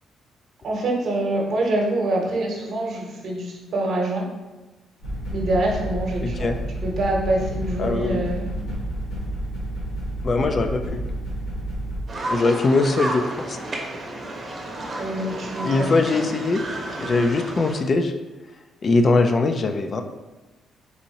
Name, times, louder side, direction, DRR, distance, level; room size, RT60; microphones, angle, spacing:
voice 1, 0.6-4.2 5.3-6.5 6.8-8.5 15.0-15.9, right 1 dB, 65° right, -1 dB, 0.9 m, -25 dB
sound 1, 5.0-12.0, right 1 dB, 90° left, 1.3 m, -30 dB
voice 2, 6.2-6.6 7.8-8.2 10.2-11.0 12.3-13.6 15.6-16.6 17.0-18.1 18.8-20.0, left 3 dB, 40° left, 6 dB, 0.3 m, -21 dB
sound 2, 12.1-17.8, right 2 dB, 35° right, 0.8 m, -32 dB
4.1 x 2.6 x 2.8 m, 1.1 s
cardioid pair, 90°, 0 cm